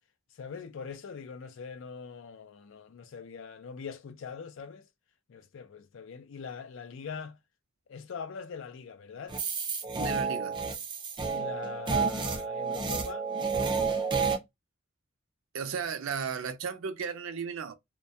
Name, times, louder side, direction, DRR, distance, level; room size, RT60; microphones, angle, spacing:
voice 1, 0.3-4.8 5.3-7.4 7.9-9.4 11.3-13.3, left 6 dB, 65° left, 0.4 m, -42 dB
sound 1, 9.3-14.4, right 5 dB, 25° right, 0.4 m, -30 dB
voice 2, 10.0-10.6 15.5-17.7, right 6 dB, 75° right, 0.4 m, -35 dB
2.2 x 2.1 x 2.6 m
head